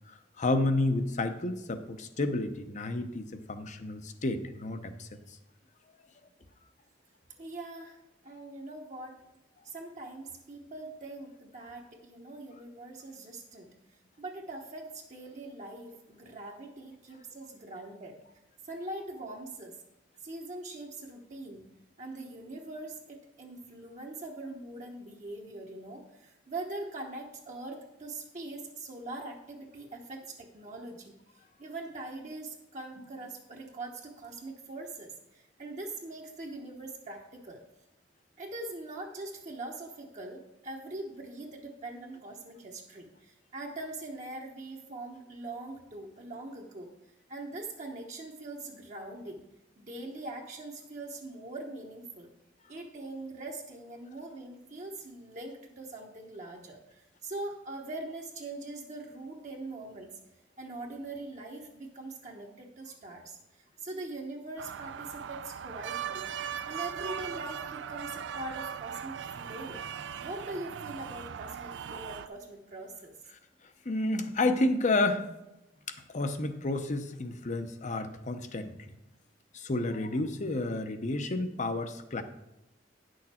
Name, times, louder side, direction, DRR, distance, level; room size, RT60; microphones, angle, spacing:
voice 1, 0.1-5.2 73.8-75.3 75.9-78.7 79.5-82.2, left 2 dB, 45° left, 8 dB, 0.7 m, -30 dB
voice 2, 7.4-8.0 8.2-9.2 9.6-13.7 14.2-18.2 18.6-19.8 20.2-21.7 22.0-31.1 31.6-37.6 38.4-46.9 47.3-49.4 49.8-52.3 52.7-60.1 60.6-66.3 66.6-69.8 70.2-73.1, right 2 dB, 45° right, 0 dB, 1.0 m, -42 dB
sound 1, 64.6-72.3, right 8 dB, 85° right, 0.4 m, -39 dB
9.7 x 6.4 x 4.3 m, 0.93 s
head